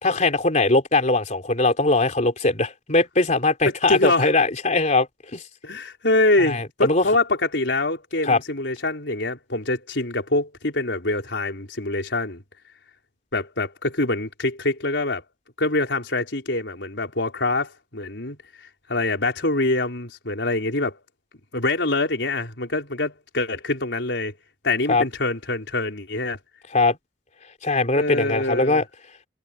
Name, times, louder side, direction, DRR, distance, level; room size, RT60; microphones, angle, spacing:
voice 1, 0.0-5.1 5.3-5.4 6.5-7.0 8.2-8.4 24.9-25.1 26.7-27.0 27.6-28.8, left 2 dB, 40° left, 3.7 m, -20 dB
voice 2, 3.7-4.3 5.6-12.4 13.3-15.2 15.6-18.4 18.9-21.0 21.5-24.3 24.6-26.4 28.0-28.8, left 2 dB, 75° left, 4.8 m, -24 dB
head